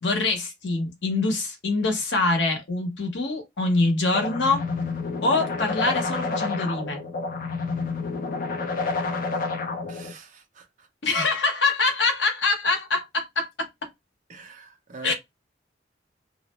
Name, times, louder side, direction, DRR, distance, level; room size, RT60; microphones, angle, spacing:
voice 1, 0.0-4.6 5.2-7.0 11.0-13.7 15.0-15.1, left 3 dB, 80° left, 0.9 m, -24 dB
sound 1, 4.1-10.1, left 4 dB, 50° left, 0.5 m, -29 dB
voice 2, 9.8-10.9 14.3-15.1, right 3 dB, 45° right, 0.6 m, -43 dB
2.4 x 2.0 x 3.0 m
head